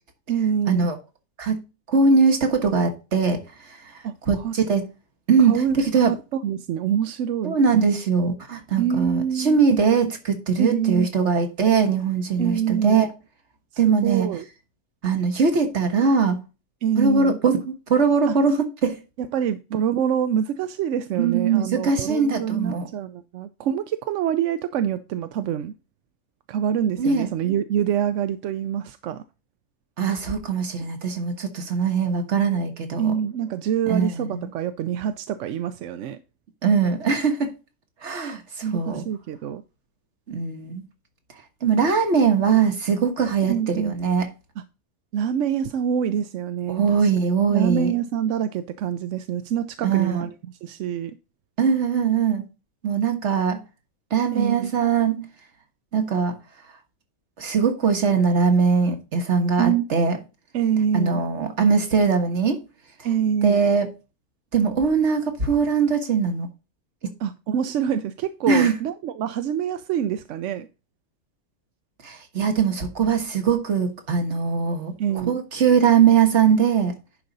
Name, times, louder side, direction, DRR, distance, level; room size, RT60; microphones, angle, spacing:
voice 1, 0.3-0.9 4.0-4.6 5.4-7.6 8.8-9.6 10.6-11.1 12.4-13.1 13.7-14.5 16.8-17.4 18.3-18.4 19.2-25.7 26.5-29.2 33.0-36.2 38.6-39.6 43.5-43.9 44.6-44.7 45.1-47.1 47.5-50.3 50.6-51.2 54.3-54.7 59.6-59.9 60.5-61.2 63.0-63.6 67.2-70.7 75.0-75.4, right 9 dB, 65° right, 0.8 m, -26 dB
voice 2, 1.9-3.4 4.3-4.8 5.3-6.1 7.5-13.1 13.8-14.3 15.0-16.4 17.0-19.0 21.2-22.9 27.0-27.3 30.0-33.2 33.9-34.5 36.6-37.5 38.0-38.4 38.7-39.0 40.3-40.8 41.6-44.3 46.7-47.9 49.8-50.3 51.6-52.4 52.8-53.6 54.1-55.3 55.9-56.4 57.4-60.2 60.9-62.6 63.4-63.9 64.5-66.5 68.5-68.8 72.0-74.9 75.3-77.0, right 5 dB, 50° right, 1.7 m, -21 dB
10.5 x 5.0 x 4.0 m
omnidirectional pair, 1.5 m